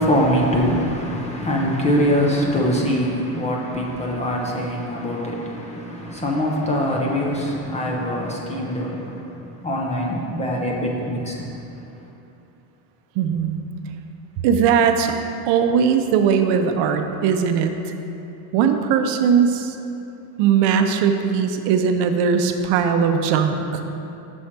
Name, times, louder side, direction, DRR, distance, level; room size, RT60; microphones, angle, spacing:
voice 1, 0.0-9.3 9.6-11.5, equal, 15° left, -2 dB, 0.5 m, -23 dB
voice 2, 13.2-13.6 14.4-15.1 15.5-17.7 18.5-19.7 20.4-23.8, right 7 dB, 60° right, 6 dB, 0.6 m, -19 dB
6.3 x 4.4 x 5.7 m, 2.8 s
cardioid pair, 155°, 46 cm